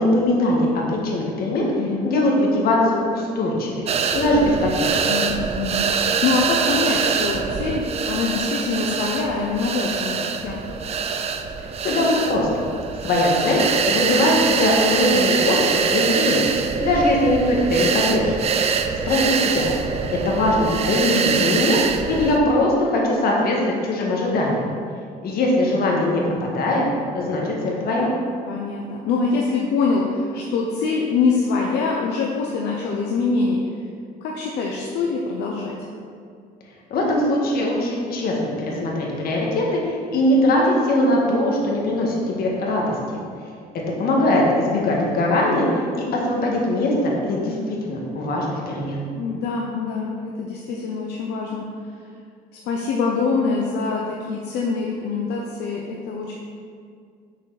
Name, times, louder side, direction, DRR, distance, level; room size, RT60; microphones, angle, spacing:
voice 1, 0.0-1.7 2.0-5.0 11.8-12.5 13.0-16.4 16.8-18.5 19.1-19.7 20.2-24.6 25.2-26.8 27.1-28.1 36.9-43.2 44.0-49.0, left 1 dB, 65° left, -2 dB, 1.7 m, -21 dB
voice 2, 1.8-2.1 5.1-10.8 21.1-21.5 28.5-33.6 34.2-35.8 44.7-45.0 49.1-51.7 52.6-56.3, left 4 dB, 80° left, -1 dB, 0.8 m, -24 dB
sound 1, 3.9-22.4, right 6 dB, 40° right, 0.5 m, -24 dB
6.5 x 6.2 x 4.1 m, 2.2 s
cardioid pair, 110°, 17 cm